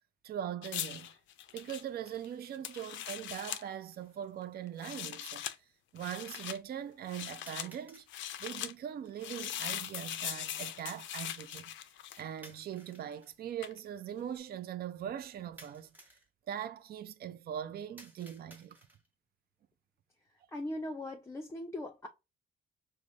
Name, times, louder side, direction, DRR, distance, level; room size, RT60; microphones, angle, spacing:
voice 1, 0.2-1.1 1.5-5.4 5.9-8.0 8.4-11.7 12.2-15.9 16.5-18.8, right 10 dB, 50° right, 0.4 m, -41 dB
sound 1, 0.6-3.6 4.7-5.5 6.0-6.6 7.1-7.7 8.1-8.7 9.2-12.4 13.6-13.8, left 11 dB, 75° left, 0.4 m, -40 dB
sound 2, 7.5-8.1 12.4-13.3 15.6-16.3 18.0-19.1, right 1 dB, 10° right, 0.9 m, -56 dB
voice 2, 20.5-22.1, left 1 dB, 15° left, 0.5 m, -39 dB
4.8 x 2.1 x 2.5 m
cardioid pair, 90°, 20 cm